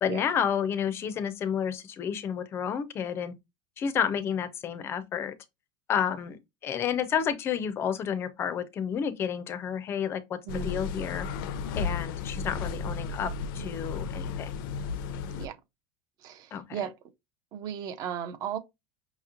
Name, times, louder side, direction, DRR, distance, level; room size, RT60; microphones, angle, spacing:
voice 1, 0.0-3.3 3.8-5.3 5.9-11.3 11.8-14.5 16.5-16.6, left 8 dB, 20° left, 0.4 m, -30 dB
sound 1, 10.5-15.5, left 5 dB, 90° left, 0.6 m, -34 dB
voice 2, 10.5-10.8 15.3-15.6 16.2-16.9 17.5-18.6, right 8 dB, 35° right, 0.4 m, -35 dB
5.6 x 3.0 x 2.4 m
cardioid pair, 180°, 11 cm